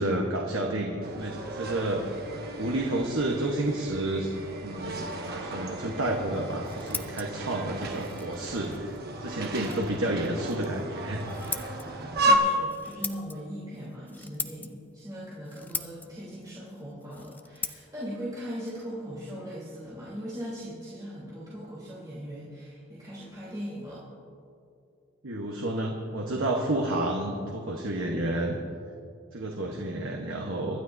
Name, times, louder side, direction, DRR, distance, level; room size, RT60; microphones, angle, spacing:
voice 1, 0.0-2.0 2.6-4.3 4.6-8.9 9.2-11.2 25.2-28.6 29.3-30.8, right 1 dB, 80° right, 0 dB, 1.1 m, -30 dB
sound 1, 1.0-12.4, right 1 dB, 50° right, 1.1 m, -33 dB
Scissors, 6.3-19.9, left 4 dB, 10° left, 0.3 m, -42 dB
voice 2, 12.2-24.0 29.6-29.7, equal, 20° right, -10 dB, 3.2 m, -39 dB
25.0 x 12.0 x 2.7 m, 2.5 s
head